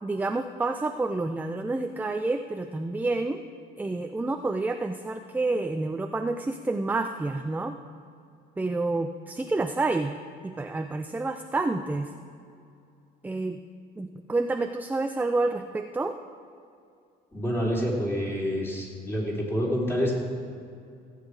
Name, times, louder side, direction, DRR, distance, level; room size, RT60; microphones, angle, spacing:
voice 1, 0.0-3.4 3.8-7.8 8.6-10.1 10.4-12.1 13.2-13.6 14.0-16.2, right 2 dB, 10° right, 6 dB, 0.5 m, -29 dB
voice 2, 17.3-20.2, equal, 15° left, -4 dB, 3.6 m, -27 dB
16.5 x 8.4 x 4.8 m, 2.4 s
cardioid pair, 110°, 17 cm